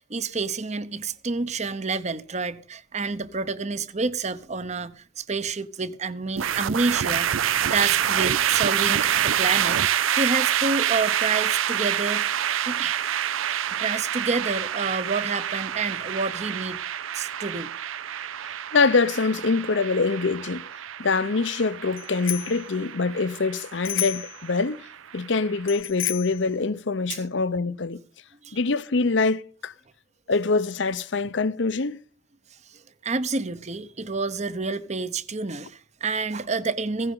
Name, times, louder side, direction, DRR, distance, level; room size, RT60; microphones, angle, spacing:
voice 1, 0.0-7.4 7.7-9.8 10.2-12.3 12.6-13.0 13.7-16.8 17.1-17.7 27.1-27.2 28.4-28.6 32.7-37.1, right 4 dB, 35° right, 0.8 m, -29 dB
sound 1, 6.4-25.6, right 10 dB, 85° right, 0.6 m, -27 dB
voice 2, 18.7-20.7 21.0-24.9 25.1-28.0 28.5-29.7 30.3-32.0, left 4 dB, 65° left, 0.7 m, -24 dB
Bicycle bell, 21.9-22.6 23.8-24.4 25.7-26.4, left 14 dB, 85° left, 1.3 m, -31 dB
16.0 x 16.0 x 3.8 m
head